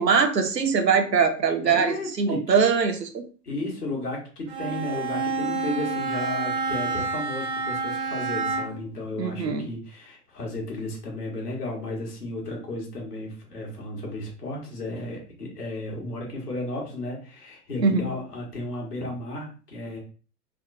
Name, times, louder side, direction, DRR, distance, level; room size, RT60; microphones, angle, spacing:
voice 1, 0.0-3.2 9.2-9.7 17.8-18.0, right 5 dB, 85° right, 6 dB, 0.7 m, -22 dB
voice 2, 1.6-2.4 3.4-20.0, left 1 dB, 70° left, -1 dB, 1.5 m, -34 dB
Bowed string instrument, 4.5-8.9, right 4 dB, 20° right, 0.5 m, -28 dB
3.5 x 2.2 x 2.6 m, 0.38 s
figure-of-eight pair, 105°, 49 cm